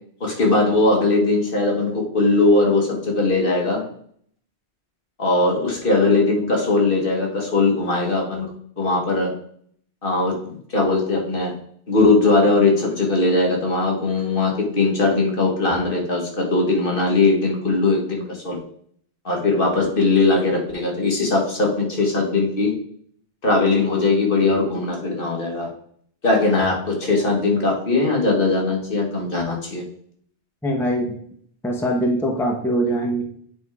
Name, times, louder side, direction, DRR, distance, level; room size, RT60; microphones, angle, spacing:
voice 1, 0.2-3.8 5.2-8.5 8.8-9.3 10.0-11.5 11.9-18.6 19.2-22.7 23.4-25.7 26.2-29.8, left 3 dB, 50° left, 0 dB, 1.6 m, -20 dB
voice 2, 30.6-31.2 31.6-33.2, right 1 dB, ahead, 1 dB, 0.9 m, -22 dB
7.9 x 3.5 x 4.8 m, 0.62 s
omnidirectional pair, 1.2 m